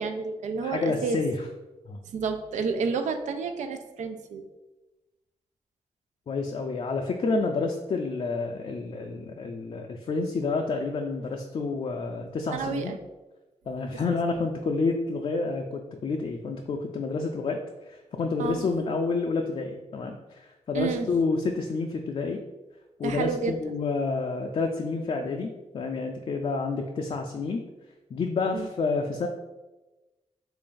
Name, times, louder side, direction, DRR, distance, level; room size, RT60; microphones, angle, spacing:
voice 1, 0.0-1.2 2.1-4.5 7.3-7.4 12.5-12.9 18.4-18.6 20.7-21.1 23.0-23.5 28.5-28.7, right 5 dB, 90° right, 7 dB, 0.4 m, -30 dB
voice 2, 0.6-1.5 1.9-2.0 6.3-13.0 13.7-17.6 17.9-22.4 23.0-27.6 28.1-29.3, left 3 dB, 50° left, 2 dB, 0.4 m, -29 dB
3.3 x 2.5 x 3.7 m, 1.1 s
cardioid pair, 65°, 12 cm